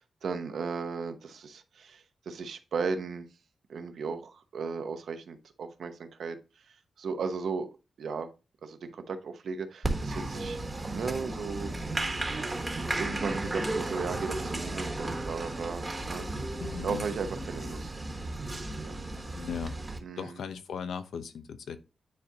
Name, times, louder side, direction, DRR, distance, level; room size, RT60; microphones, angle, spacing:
voice 1, 0.0-3.3 3.7-6.4 7.0-7.7 8.0-8.3 8.6-10.6 10.9-11.7 13.0-16.6 16.8-17.9 18.6-18.9 20.0-20.4, right 5 dB, 65° right, 0.9 m, -36 dB
Applause, 9.8-20.0, right 2 dB, 20° right, 1.2 m, -34 dB
voice 2, 16.6-17.1 19.4-19.8 20.2-21.8, left 7 dB, 85° left, 0.8 m, -37 dB
9.5 x 4.3 x 2.8 m
wide cardioid pair, 150°, 0 cm